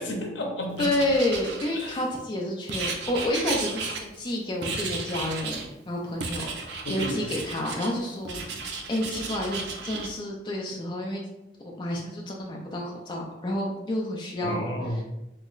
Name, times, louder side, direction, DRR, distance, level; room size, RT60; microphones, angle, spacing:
voice 1, 0.0-0.9 1.7-2.0 6.8-7.1 14.4-15.0, left 1 dB, 85° left, 2 dB, 0.6 m, -31 dB
voice 2, 0.8-8.6 8.9-11.2 11.6-14.6, left 1 dB, 25° left, -1 dB, 0.4 m, -29 dB
Writing, 0.8-2.1 2.7-4.3 4.6-5.7 6.2-7.9 8.2-10.1, right 4 dB, 75° right, 0.5 m, -34 dB
3.0 x 2.1 x 3.7 m, 0.93 s
head